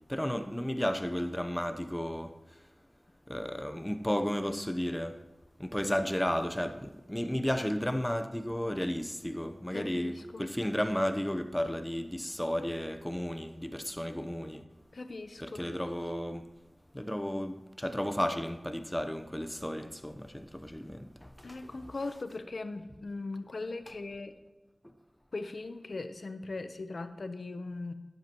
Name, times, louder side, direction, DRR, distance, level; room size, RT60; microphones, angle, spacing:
voice 1, 0.1-2.3 3.3-5.2 5.6-14.6 15.4-16.4 16.9-21.6, equal, 10° left, 0.8 m, -33 dB
voice 2, 9.7-10.5 14.9-15.7 21.4-24.3 25.3-27.9, left 3 dB, 75° left, 0.8 m, -39 dB
12.0 x 10.5 x 3.0 m
cardioid pair, 45°, 0 cm